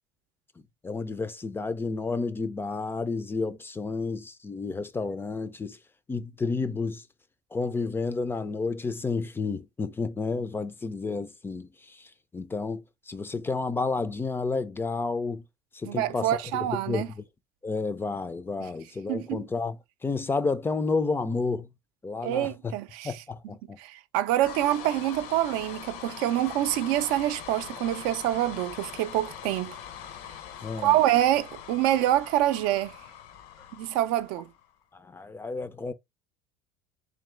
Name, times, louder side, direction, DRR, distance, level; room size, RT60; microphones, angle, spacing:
voice 1, 0.8-5.8 6.1-7.0 7.5-15.4 15.7-16.3 16.9-17.2 17.6-19.8 20.0-21.7 22.0-22.5 23.0-23.8 30.6-31.0 34.9-35.9, left 4 dB, 15° left, 0.3 m, -31 dB
voice 2, 15.9-17.1 19.1-19.5 22.2-23.2 23.8-29.8 30.8-32.9 33.7-34.5, right 13 dB, 80° right, 0.5 m, -26 dB
sound 1, 24.4-34.7, left 9 dB, 70° left, 0.7 m, -42 dB
3.8 x 3.0 x 3.2 m
cardioid pair, 120°, 15 cm